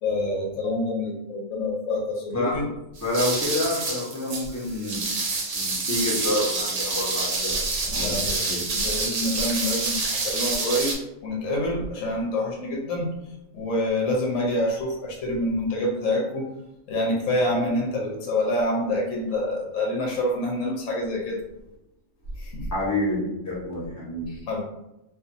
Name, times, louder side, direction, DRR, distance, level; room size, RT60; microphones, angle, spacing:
voice 1, 0.0-2.6 7.9-8.4 8.7-11.0 11.2-13.1 13.5-16.5 16.9-21.4 22.4-22.7 24.3-24.6, left 1 dB, 75° left, -2 dB, 1.1 m, -27 dB
voice 2, 3.0-5.0 5.5-7.6 7.9-8.6 22.7-24.3, left 1 dB, 15° left, -8 dB, 0.8 m, -28 dB
sound 1, 3.0-10.9, right 3 dB, 65° right, 1.0 m, -27 dB
2.6 x 2.5 x 2.5 m, 0.90 s
omnidirectional pair, 1.4 m